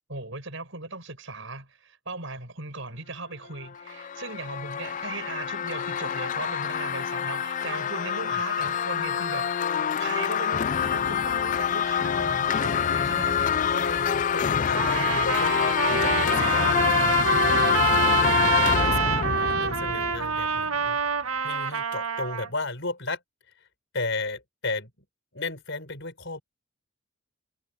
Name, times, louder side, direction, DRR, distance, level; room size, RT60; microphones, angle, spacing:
voice 1, 0.1-13.5 16.1-16.7, right 3 dB, 60° right, 7.6 m, -38 dB
sound 1, 3.6-20.6, left 8 dB, 35° left, 0.3 m, -26 dB
voice 2, 13.6-21.0 21.4-23.2 23.6-23.7 23.9-24.9 25.3-26.4, left 3 dB, 55° left, 6.1 m, -35 dB
Trumpet, 14.8-22.5, right 6 dB, 85° right, 1.8 m, -26 dB
head